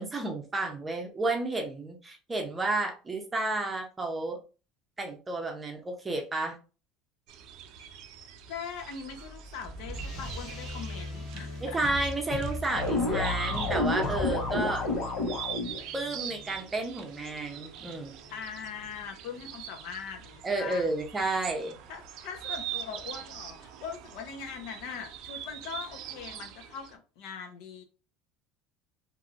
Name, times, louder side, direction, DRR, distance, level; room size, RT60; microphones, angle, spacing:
voice 1, 0.0-4.4 5.0-6.6 11.6-14.9 15.9-18.1 20.4-21.8, right 2 dB, 15° right, 0.6 m, -31 dB
sound 1, 7.3-26.9, right 10 dB, 60° right, 0.4 m, -44 dB
voice 2, 8.5-11.8 18.3-20.9 21.9-27.8, left 6 dB, 70° left, 0.8 m, -41 dB
sound 2, 8.8-19.5, left 1 dB, 45° left, 1.2 m, -41 dB
sound 3, 12.7-15.8, left 2 dB, 85° left, 1.1 m, -29 dB
3.0 x 2.6 x 2.5 m
cardioid pair, 140°, 0 cm